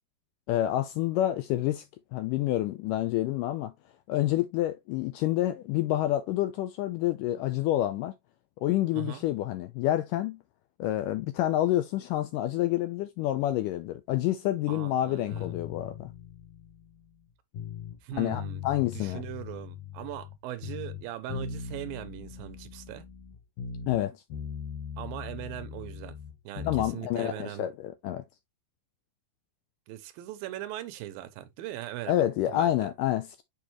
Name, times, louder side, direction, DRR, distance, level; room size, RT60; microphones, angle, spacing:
voice 1, 0.5-1.9 2.1-3.7 4.1-8.1 8.6-10.4 10.8-16.1 18.1-19.2 23.9-24.2 26.6-28.2 32.1-33.4, left 14 dB, 80° left, 1.9 m, -28 dB
voice 2, 8.9-9.2 14.7-15.6 18.0-18.6 18.9-23.1 25.0-26.2 26.4-27.7 29.9-32.3 32.5-32.9, right 14 dB, 80° right, 2.4 m, -40 dB
sound 1, 15.3-18.0 18.3-20.4 20.6-24.0 24.3-26.9, left 7 dB, 65° left, 2.7 m, -40 dB
7.0 x 5.0 x 3.0 m
omnidirectional pair, 4.2 m